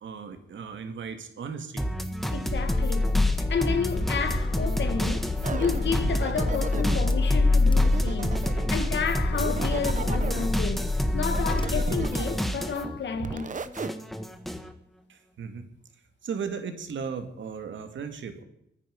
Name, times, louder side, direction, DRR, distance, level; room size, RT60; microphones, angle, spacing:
voice 1, 0.0-1.9 15.1-15.7 16.2-18.4, right 6 dB, 85° right, 2.3 m, -36 dB
sound 1, 1.8-13.0 13.3-14.7, equal, ahead, 1.6 m, -31 dB
voice 2, 2.3-13.6, left 5 dB, 70° left, 1.9 m, -31 dB
Car / Engine starting, 2.5-12.6, left 3 dB, 25° left, 1.1 m, -26 dB
sound 2, 5.4-7.2 7.8-8.8 9.3-10.5 11.2-12.5 13.1-13.9, right 5 dB, 40° right, 1.1 m, -36 dB
23.5 x 10.0 x 5.4 m
wide cardioid pair, 105°, 19 cm